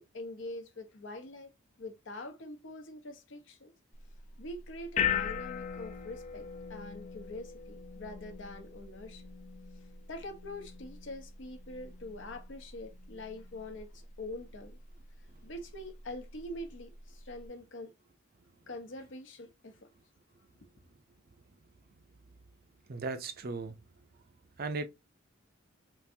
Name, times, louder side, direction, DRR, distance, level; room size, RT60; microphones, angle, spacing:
voice 1, 0.0-1.5 1.8-3.7 4.4-9.3 10.1-14.8 15.4-17.9 18.7-19.9, left 1 dB, 70° left, 0.8 m, -44 dB
sound 1, 3.9-17.5, left 8 dB, 35° left, 0.5 m, -40 dB
voice 2, 22.9-23.8 24.6-24.9, right 3 dB, 50° right, 0.5 m, -37 dB
3.7 x 2.5 x 2.7 m
head